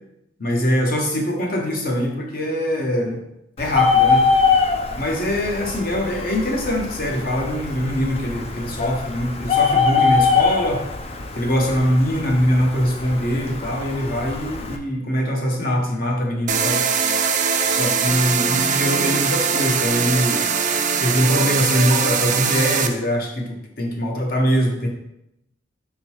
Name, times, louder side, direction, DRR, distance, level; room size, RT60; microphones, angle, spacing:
voice 1, 0.4-3.2 3.6-4.2 5.0-10.8 11.3-16.8 17.7-20.4 21.0-24.9, equal, 50° left, 1 dB, 1.1 m, -22 dB
Bird, 3.6-14.8, left 5 dB, 35° left, 0.5 m, -23 dB
sound 1, 16.5-22.9, right 6 dB, 40° right, 0.5 m, -21 dB
5.5 x 3.9 x 4.5 m, 0.82 s
head